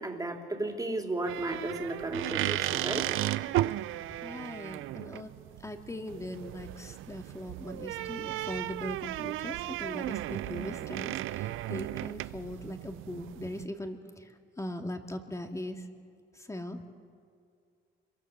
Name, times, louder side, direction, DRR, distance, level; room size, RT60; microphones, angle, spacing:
voice 1, 0.0-3.1, right 2 dB, 20° right, 3 dB, 3.4 m, -34 dB
sound 1, 1.2-13.6, right 15 dB, 90° right, 0.6 m, -35 dB
voice 2, 4.2-5.3 5.6-15.9 16.3-16.9, left 1 dB, 15° left, 5 dB, 2.3 m, -40 dB
27.0 x 23.0 x 6.8 m, 2.2 s
cardioid pair, 90°, 20 cm